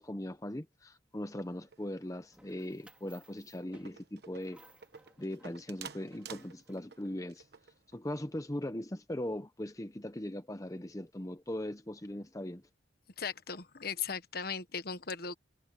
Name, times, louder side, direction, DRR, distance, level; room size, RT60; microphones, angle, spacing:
voice 1, 0.0-4.6 5.2-7.5 7.9-12.6, left 1 dB, 20° left, 0.8 m, -39 dB
sound 1, 1.5-2.2 2.5-2.8 3.2-3.3 3.6-8.0, right 6 dB, 60° right, 1.2 m, -51 dB
sound 2, 2.3-7.0, right 1 dB, 5° right, 4.2 m, -62 dB
voice 2, 13.2-15.4, left 6 dB, 55° left, 1.2 m, -37 dB
head